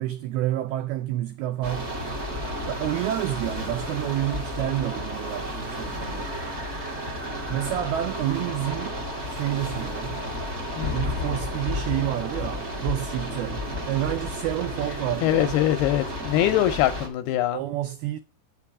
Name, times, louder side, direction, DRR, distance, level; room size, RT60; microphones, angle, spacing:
voice 1, 0.0-2.0 2.7-6.3 7.5-9.0 9.3-10.2 10.9-15.6 17.5-18.2, right 14 dB, 85° right, 2.2 m, -29 dB
sound 1, 1.6-17.1, left 1 dB, 45° right, 0.8 m, -32 dB
voice 2, 15.2-17.6, left 13 dB, 80° left, 2.3 m, -23 dB
9.0 x 6.8 x 4.8 m
omnidirectional pair, 5.2 m